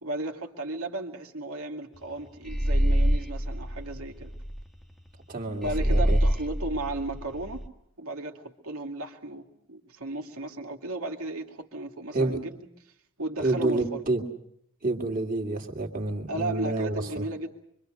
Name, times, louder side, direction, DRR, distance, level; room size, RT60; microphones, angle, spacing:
voice 1, 0.0-4.3 5.6-7.7 8.0-12.6 13.2-14.0 16.3-17.5, right 2 dB, 75° right, 3 dB, 2.5 m, -35 dB
sound 1, 2.5-4.6 5.6-7.7, equal, ahead, 1.4 m, -25 dB
voice 2, 5.3-6.2 12.1-12.4 13.4-14.2 14.8-17.3, right 2 dB, 40° right, 3 dB, 2.5 m, -28 dB
25.0 x 25.0 x 6.6 m, 0.72 s
head